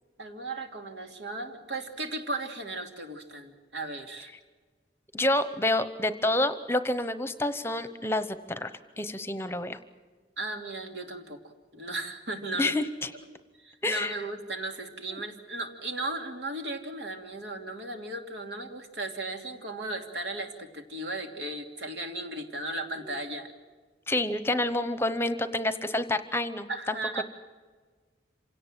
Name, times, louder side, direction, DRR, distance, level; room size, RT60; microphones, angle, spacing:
voice 1, 0.2-4.3 10.4-11.4 11.7-12.8 13.6-23.5 26.7-27.2, right 2 dB, 80° right, 4 dB, 2.7 m, -36 dB
voice 2, 5.1-8.7 9.0-9.8 12.6-13.1 13.8-14.1 15.1-15.2 23.1-23.2 24.1-27.2, left 1 dB, 15° left, 11 dB, 0.9 m, -28 dB
27.0 x 17.5 x 7.5 m, 1.4 s
head